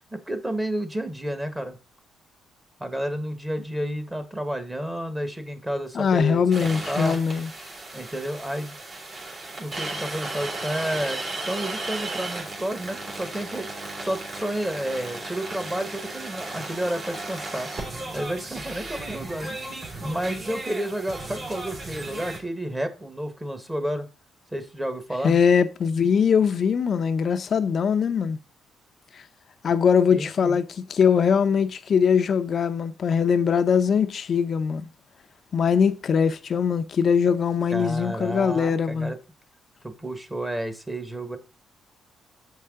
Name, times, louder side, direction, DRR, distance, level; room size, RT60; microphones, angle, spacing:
voice 1, 0.1-1.8 2.8-7.2 7.9-8.7 9.6-13.7 14.0-17.7 18.1-19.6 20.0-24.1 24.5-25.4 30.1-30.6 37.7-39.2 40.0-41.4, right 1 dB, 15° right, 1.3 m, -31 dB
voice 2, 5.9-7.5 25.2-28.4 29.6-34.8 35.5-39.1, left 6 dB, 50° left, 0.6 m, -21 dB
sound 1, 6.5-22.4, right 2 dB, 50° right, 3.1 m, -35 dB
7.4 x 5.6 x 3.7 m
cardioid pair, 90°, 0 cm